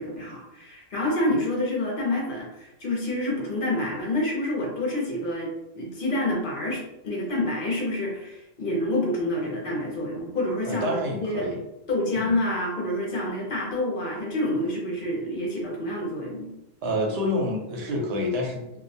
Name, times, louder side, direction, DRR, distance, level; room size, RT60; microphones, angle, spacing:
voice 1, 0.0-11.5 11.9-16.5, left 1 dB, 60° left, -2 dB, 0.8 m, -28 dB
voice 2, 10.6-11.6 12.1-12.4 16.8-18.8, left 1 dB, 75° right, 0 dB, 0.9 m, -28 dB
2.2 x 2.1 x 2.6 m, 0.91 s
omnidirectional pair, 1.1 m